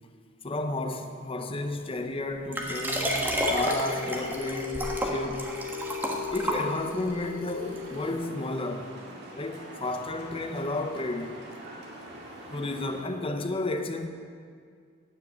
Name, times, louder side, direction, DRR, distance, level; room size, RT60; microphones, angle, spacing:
voice 1, 0.4-5.5 6.3-8.9 9.4-11.4 12.5-14.1, left 2 dB, 30° left, 6 dB, 0.8 m, -32 dB
Liquid, 2.5-7.1 7.8-7.9, equal, 10° right, 1.2 m, -30 dB
sound 1, 2.9-8.1, left 5 dB, 85° right, 1.0 m, -38 dB
sound 2, 7.6-13.0, right 1 dB, 55° right, 1.9 m, -45 dB
9.7 x 8.1 x 7.7 m, 2.1 s
head